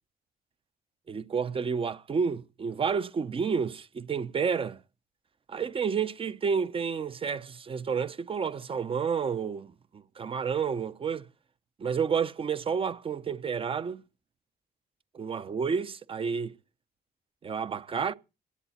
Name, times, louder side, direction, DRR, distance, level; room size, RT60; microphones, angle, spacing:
voice 1, 1.1-4.8 5.5-11.3 11.8-14.0 15.1-16.6 17.4-18.1, right 6 dB, 30° right, 0.8 m, -30 dB
18.5 x 12.0 x 4.3 m
cardioid pair, 130°, 17 cm